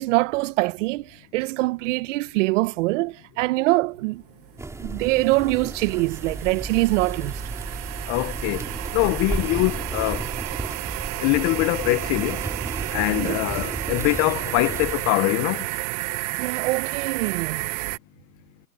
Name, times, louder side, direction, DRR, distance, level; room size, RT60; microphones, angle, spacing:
voice 1, 0.0-4.2 4.8-7.4 13.1-13.4 16.4-17.7, right 22 dB, 50° right, 1.4 m, -24 dB
sound 1, 4.1-18.0, right 23 dB, 35° right, 1.0 m, -32 dB
sound 2, 4.6-15.1, right 2 dB, 5° right, 3.5 m, -34 dB
voice 2, 8.1-10.3 11.2-12.5 12.9-15.7, left 25 dB, 35° left, 1.0 m, -23 dB
hypercardioid pair, 125°, 48 cm